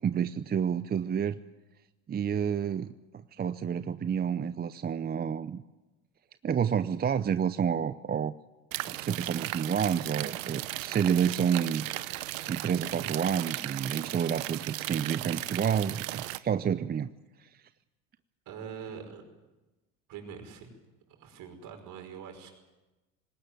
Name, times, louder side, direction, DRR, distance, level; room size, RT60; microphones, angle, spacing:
voice 1, 0.0-1.4 2.1-5.6 6.4-8.3 8.9-11.9 12.5-17.1 17.4-17.5, right 8 dB, 25° right, 13 dB, 0.7 m, -29 dB
sound 1, 8.7-16.4, right 17 dB, 80° right, 0.9 m, -36 dB
voice 2, 18.5-19.2 20.1-20.8 21.1-22.5, right 7 dB, 55° right, 5 dB, 5.5 m, -43 dB
20.5 x 18.0 x 9.2 m, 1.1 s
hypercardioid pair, 75°, 39 cm